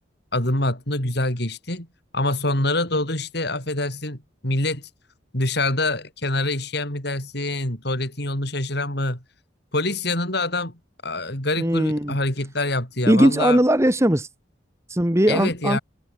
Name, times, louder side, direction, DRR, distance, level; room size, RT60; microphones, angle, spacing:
voice 1, 0.3-1.9 2.1-4.2 4.4-4.9 5.3-9.2 9.7-13.6 15.3-15.8, left 2 dB, 55° left, 7.2 m, -25 dB
voice 2, 11.6-12.2 13.1-14.3 14.9-15.8, equal, 15° right, 2.1 m, -19 dB
head